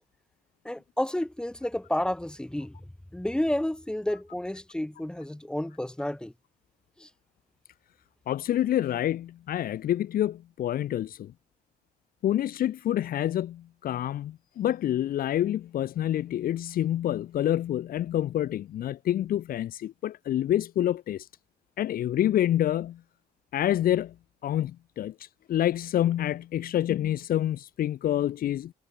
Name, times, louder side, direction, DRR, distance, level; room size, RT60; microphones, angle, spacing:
voice 1, 0.6-6.3 7.0-7.1, left 1 dB, 5° left, 4.0 m, -31 dB
voice 2, 8.3-11.3 12.2-21.3 21.8-23.0 23.5-24.1 24.4-28.7, left 12 dB, 60° left, 1.7 m, -27 dB
cardioid pair, 110°, 17 cm